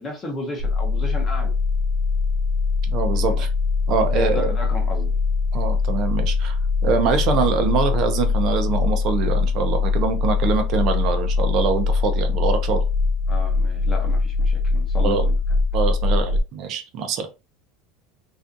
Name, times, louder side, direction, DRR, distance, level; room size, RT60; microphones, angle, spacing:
voice 1, 0.0-1.5 3.1-3.4 4.1-5.2 13.3-15.4, left 2 dB, 20° left, 0.6 m, -33 dB
sound 1, 0.6-16.4, left 4 dB, 65° left, 0.4 m, -22 dB
voice 2, 2.9-3.5 3.9-4.5 5.5-6.6 6.8-12.8 15.0-15.3 15.7-17.3, right 5 dB, 40° right, 0.4 m, -24 dB
2.5 x 2.3 x 2.4 m
cardioid pair, 170°, 0 cm